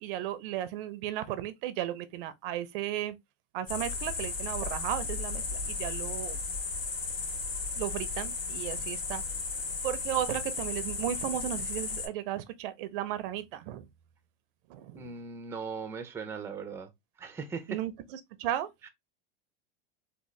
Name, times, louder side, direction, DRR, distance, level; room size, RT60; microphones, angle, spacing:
voice 1, 0.0-3.1 3.5-6.4 7.8-9.2 9.8-13.9 14.7-15.1 17.7-18.7, right 12 dB, 65° right, 0.6 m, -35 dB
sound 1, 3.7-12.1, left 4 dB, 70° left, 2.5 m, -35 dB
voice 2, 14.9-16.9 17.2-17.8 18.8-18.9, right 5 dB, 10° right, 0.5 m, -39 dB
3.6 x 2.5 x 3.0 m
supercardioid pair, 125°, 30 cm